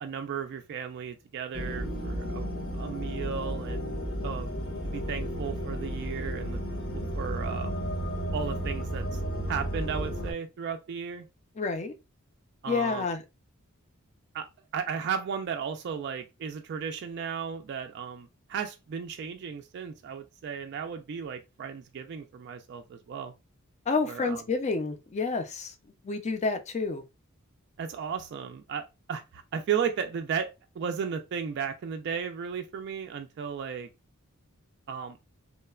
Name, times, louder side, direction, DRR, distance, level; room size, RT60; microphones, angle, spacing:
voice 1, 0.0-2.5 2.7-4.5 4.8-6.6 6.9-7.8 8.3-9.2 9.5-11.3 12.6-13.0 14.3-14.5 14.7-23.3 24.1-24.4 27.8-30.5 30.8-33.9 34.9-35.2, right 7 dB, 50° right, 0.3 m, -35 dB
sound 1, 1.5-10.3, equal, 70° left, 1.1 m, -33 dB
voice 2, 11.6-11.9 12.7-13.2 23.9-25.7 26.0-27.0, left 4 dB, 30° left, 0.4 m, -29 dB
3.0 x 2.0 x 2.3 m
head